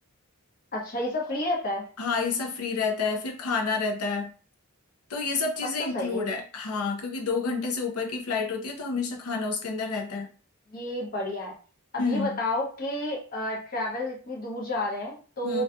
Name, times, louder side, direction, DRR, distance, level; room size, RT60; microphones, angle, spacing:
voice 1, 0.7-1.9 5.8-6.2 10.7-11.6 11.9-15.6, left 1 dB, 40° left, -1 dB, 0.7 m, -30 dB
voice 2, 2.0-4.3 5.1-10.3 12.0-12.4 15.4-15.6, left 4 dB, 85° left, 2 dB, 0.6 m, -29 dB
2.6 x 2.3 x 2.3 m, 0.38 s
head